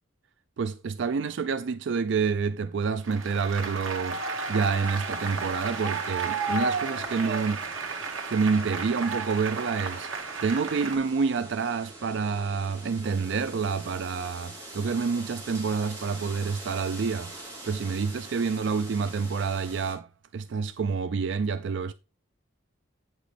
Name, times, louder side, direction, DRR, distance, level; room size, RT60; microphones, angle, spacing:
voice 1, 0.6-4.2 4.5-7.6 8.3-10.1 10.4-17.3 17.6-20.1 20.3-21.9, right 5 dB, 65° right, 0.4 m, -28 dB
Applause, 3.0-11.0, right 4 dB, 80° right, 1.3 m, -33 dB
sound 1, 3.7-19.9, right 2 dB, 15° right, 2.4 m, -45 dB
8.3 x 6.1 x 3.3 m
head